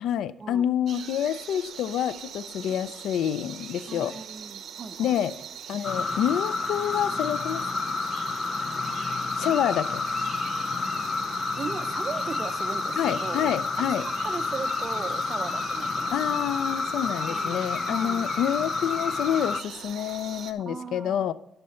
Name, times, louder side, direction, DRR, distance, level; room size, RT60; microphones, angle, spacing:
voice 1, 0.0-4.1 5.0-5.3 5.7-7.7 9.4-10.0 13.0-14.0 16.1-21.3, left 10 dB, 80° left, 0.4 m, -27 dB
sound 1, 0.9-20.5, right 8 dB, 65° right, 0.8 m, -41 dB
voice 2, 3.9-5.2 8.9-9.5 11.6-13.5 13.8-16.4 17.1-18.2 20.7-21.2, right 5 dB, 35° right, 0.7 m, -38 dB
sound 2, 5.8-19.6, left 4 dB, 35° left, 0.6 m, -30 dB
11.5 x 6.6 x 4.3 m
cardioid pair, 90°, 0 cm